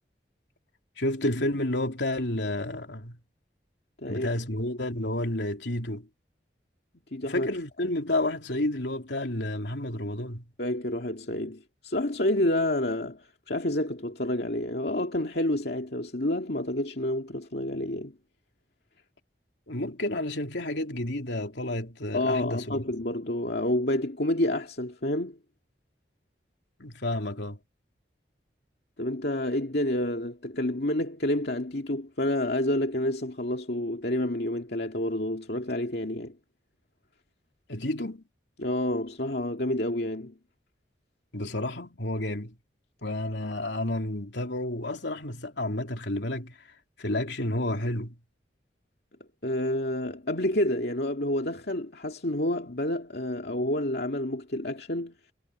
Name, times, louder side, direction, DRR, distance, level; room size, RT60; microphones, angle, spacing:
voice 1, 1.0-3.2 4.1-6.1 7.3-10.4 19.7-22.8 26.8-27.6 37.7-38.2 41.3-42.6 43.0-46.6 47.0-48.2, left 1 dB, 80° left, 3.2 m, -30 dB
voice 2, 4.0-4.3 7.1-7.5 10.6-18.2 22.1-25.4 29.0-36.4 38.6-40.4 49.4-55.1, left 1 dB, 65° left, 2.3 m, -29 dB
head